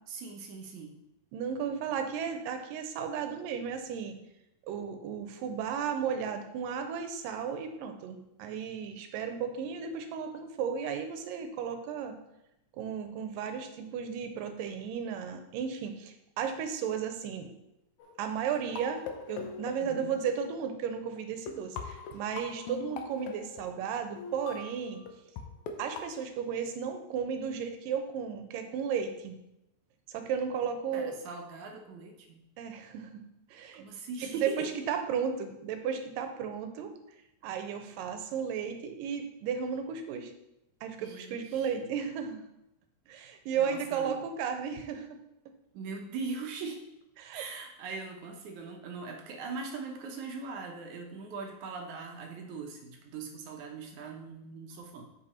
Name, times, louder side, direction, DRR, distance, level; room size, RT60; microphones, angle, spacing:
voice 1, 0.1-1.0 19.8-20.2 30.6-32.4 33.7-34.8 41.0-41.7 43.6-44.2 45.7-46.8 47.3-55.0, right 4 dB, 70° right, 2 dB, 2.2 m, -41 dB
voice 2, 1.3-4.2 4.7-12.2 12.8-17.5 18.2-25.0 25.8-29.4 30.1-31.2 32.6-33.2 33.5-33.8 34.2-36.9 37.4-40.3 40.8-42.4 43.1-45.2 47.2-47.4, right 7 dB, 90° right, 7 dB, 2.5 m, -34 dB
sound 1, 18.0-20.5 21.2-21.3 21.5-25.4 25.7-26.1, left 5 dB, 70° left, 1.9 m, -42 dB
7.6 x 5.3 x 4.2 m, 0.87 s
omnidirectional pair, 3.8 m